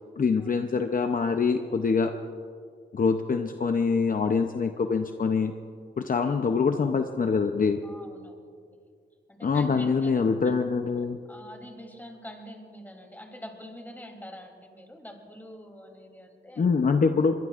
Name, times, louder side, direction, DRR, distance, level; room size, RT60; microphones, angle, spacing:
voice 1, 0.2-2.1 2.9-5.5 6.0-7.8 9.4-11.2 16.6-17.4, left 5 dB, 50° left, 6 dB, 0.7 m, -24 dB
voice 2, 7.8-8.6 9.3-10.5 11.3-16.6, equal, 10° left, 2 dB, 3.2 m, -45 dB
22.5 x 22.5 x 2.5 m, 2.2 s
cardioid pair, 70°, 19 cm